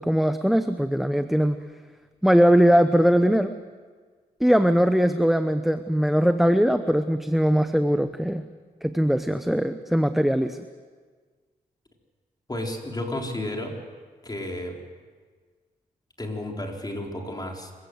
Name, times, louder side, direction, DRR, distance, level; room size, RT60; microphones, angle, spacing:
voice 1, 0.0-1.6 2.2-3.5 4.4-8.4 8.8-10.6, equal, ahead, 9 dB, 0.9 m, -20 dB
voice 2, 12.5-13.8 14.2-14.8 16.2-17.7, left 1 dB, 25° left, 1 dB, 4.0 m, -32 dB
25.5 x 16.0 x 7.9 m, 1.5 s
cardioid pair, 70°, 16 cm